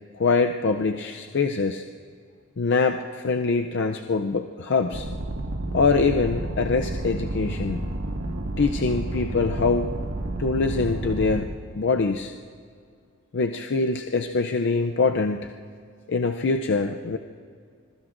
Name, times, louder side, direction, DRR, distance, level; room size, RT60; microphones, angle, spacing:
voice 1, 0.2-1.8 2.6-5.1 5.7-7.9 8.6-9.9 10.4-12.3 13.3-15.5 16.1-17.2, left 4 dB, 55° left, 5 dB, 0.5 m, -24 dB
sound 1, 4.9-11.4, right 1 dB, 75° right, 1.7 m, -30 dB
25.5 x 22.0 x 2.6 m, 2.2 s
head